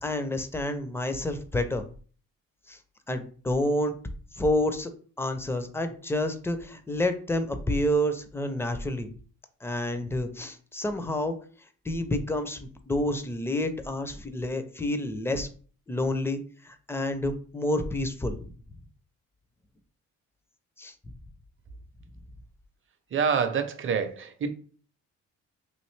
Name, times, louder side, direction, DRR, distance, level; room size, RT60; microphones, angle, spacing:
voice 1, 0.0-1.8 2.7-2.8 3.1-3.9 4.3-4.9 5.2-9.1 9.6-11.4 11.8-15.5 15.9-18.5 20.8-20.9, left 1 dB, 10° left, 0.4 m, -29 dB
voice 2, 23.1-24.5, right 6 dB, 40° right, 0.5 m, -27 dB
3.1 x 2.5 x 3.2 m
cardioid pair, 90°, 30 cm